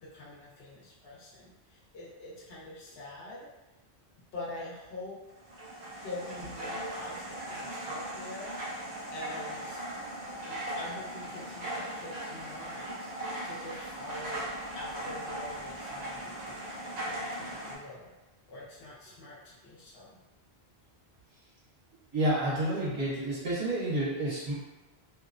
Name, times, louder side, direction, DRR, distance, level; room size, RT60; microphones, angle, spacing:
voice 1, 0.0-3.5 4.3-5.2 6.0-8.5 9.1-9.8 10.5-13.1 13.4-14.5 14.8-16.7 16.9-18.1 18.5-20.2, left 2 dB, 75° left, -7 dB, 1.0 m, -45 dB
sound 1, 5.4-17.8, right 1 dB, 50° right, 0.7 m, -38 dB
voice 2, 22.1-24.5, right 1 dB, 65° right, -7 dB, 1.2 m, -29 dB
2.8 x 2.0 x 2.4 m, 1.1 s
omnidirectional pair, 1.1 m